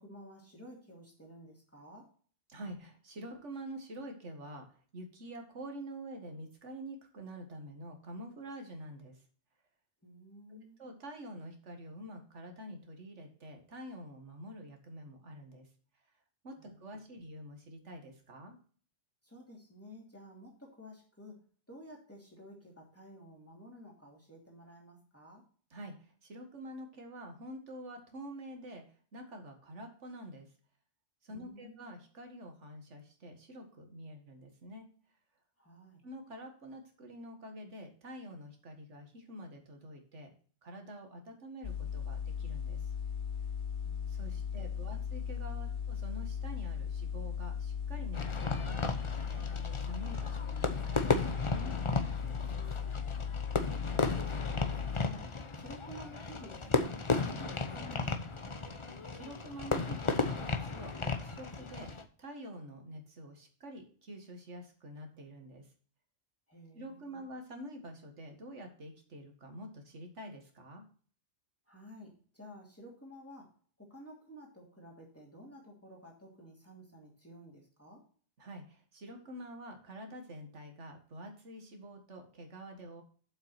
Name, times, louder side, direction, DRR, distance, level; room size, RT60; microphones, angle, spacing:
voice 1, 0.0-2.1 10.0-10.8 16.6-16.8 19.2-21.4 21.7-25.4 31.3-32.0 35.6-36.0 43.8-45.0 53.5-58.6 66.5-67.3 71.7-73.5 73.8-78.0, equal, 10° left, -2 dB, 3.0 m, -53 dB
voice 2, 2.5-9.2 10.5-15.7 16.4-18.6 25.7-28.8 29.1-30.5 31.2-34.9 36.0-40.3 40.6-42.9 44.1-52.7 59.1-61.9 62.2-65.7 66.7-70.8 78.4-83.0, right 1 dB, 85° right, 4 dB, 2.0 m, -47 dB
sound 1, 41.6-55.1, left 7 dB, 70° left, 1.2 m, -37 dB
Fireworks, 48.1-62.0, left 3 dB, 30° left, 0.8 m, -35 dB
7.6 x 5.9 x 5.8 m, 0.43 s
omnidirectional pair, 1.2 m